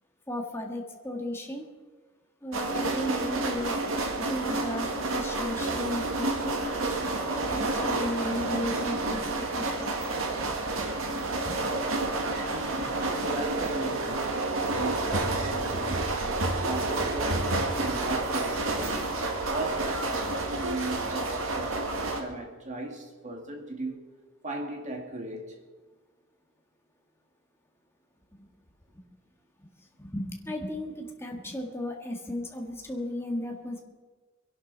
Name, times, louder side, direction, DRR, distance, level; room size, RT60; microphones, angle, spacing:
voice 1, 0.3-1.7 2.4-3.8 4.2-6.6 7.3-9.9 10.4-10.5 11.0-11.2 11.4-11.6 28.4-28.5 29.6-29.7 30.0-33.8, left 1 dB, 10° left, 1.9 m, -35 dB
sound 1, 2.5-22.2, right 2 dB, 70° right, 2.0 m, -29 dB
voice 2, 12.5-14.4 14.7-19.1 19.4-24.0 24.4-25.6, right 2 dB, 35° right, 2.2 m, -37 dB
23.5 x 11.5 x 4.1 m
head